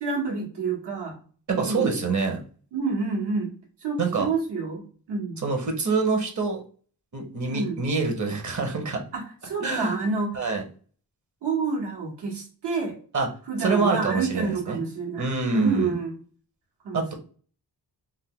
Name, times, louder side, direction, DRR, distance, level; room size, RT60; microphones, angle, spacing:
voice 1, 0.0-1.2 1.6-2.0 2.7-3.5 3.8-5.4 7.5-7.9 9.1-10.5 11.4-13.0 13.5-16.2 16.8-17.1, right 4 dB, 80° right, -2 dB, 1.4 m, -28 dB
voice 2, 1.5-2.4 4.0-4.3 5.4-6.6 7.1-9.0 9.6-10.0 10.3-10.6 13.1-13.3 13.6-14.8 15.2-15.9 16.9-17.1, right 4 dB, 45° right, 4 dB, 1.0 m, -26 dB
2.7 x 2.2 x 3.7 m, 0.42 s
cardioid pair, 70°, 40 cm